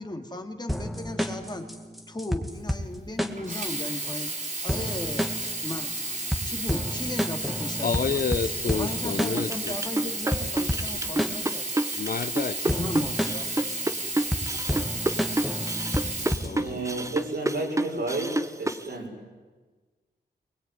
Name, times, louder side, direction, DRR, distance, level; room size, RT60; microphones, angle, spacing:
voice 1, 0.0-1.7 2.1-5.3 5.6-6.1 6.4-8.2 8.6-11.8 12.6-13.5, left 1 dB, 25° left, 5 dB, 2.5 m, -36 dB
sound 1, 0.7-16.7, equal, ahead, 2.1 m, -31 dB
Sink (filling or washing), 3.4-17.1 17.9-18.0, right 2 dB, 45° right, 4.6 m, -33 dB
voice 2, 7.8-9.7 12.0-12.6 16.4-16.8, left 6 dB, 55° left, 13 dB, 0.9 m, -29 dB
sound 2, 9.4-18.9, right 1 dB, 15° right, 1.1 m, -29 dB
voice 3, 16.6-19.1, right 2 dB, 70° right, 0 dB, 6.1 m, -31 dB
21.0 x 20.5 x 9.6 m, 1.4 s
cardioid pair, 75°, 18 cm